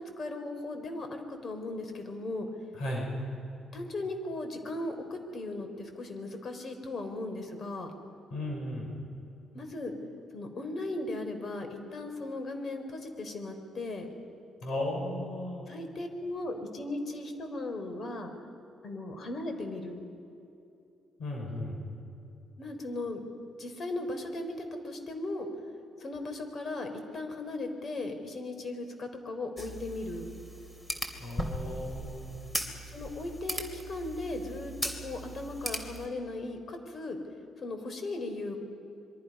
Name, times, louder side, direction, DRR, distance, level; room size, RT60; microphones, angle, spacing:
voice 1, 0.0-2.5 3.7-7.9 9.5-9.9 10.3-14.1 15.7-18.3 18.8-20.0 22.6-23.2 23.6-25.5 26.0-30.3 32.8-34.7 35.0-37.2 37.6-38.6, left 2 dB, 45° left, 6 dB, 3.9 m, -37 dB
voice 2, 8.3-8.9 14.6-15.7 21.2-21.8 31.2-32.5, left 1 dB, 70° left, 0 dB, 5.4 m, -35 dB
sound 1, 29.6-36.1, equal, 15° left, 2.8 m, -38 dB
27.0 x 23.0 x 5.5 m, 2.7 s
cardioid pair, 90°, 0 cm